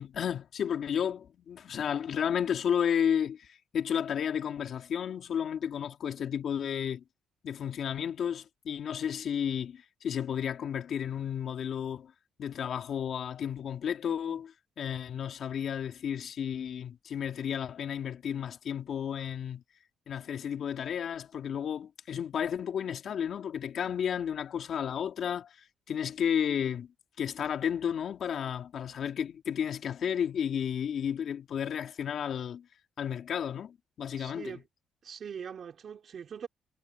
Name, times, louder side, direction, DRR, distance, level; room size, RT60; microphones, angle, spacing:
voice 1, 0.0-7.0 7.4-12.1 12.4-19.6 20.1-25.5 25.9-26.9 27.2-32.7 33.0-34.6, left 8 dB, 60° left, 2.9 m, -32 dB
voice 2, 34.2-34.6 35.0-36.5, right 7 dB, 55° right, 3.9 m, -42 dB
cardioid pair, 90°, 0 cm